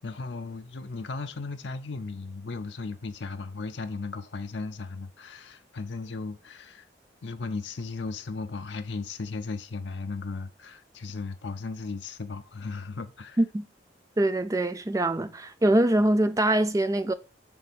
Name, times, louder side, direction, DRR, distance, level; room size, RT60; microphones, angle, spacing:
voice 1, 0.0-6.8 7.2-13.4 15.2-15.3, left 4 dB, 80° left, 0.6 m, -36 dB
voice 2, 14.2-17.1, right 1 dB, 20° right, 0.4 m, -23 dB
6.9 x 3.5 x 5.2 m
head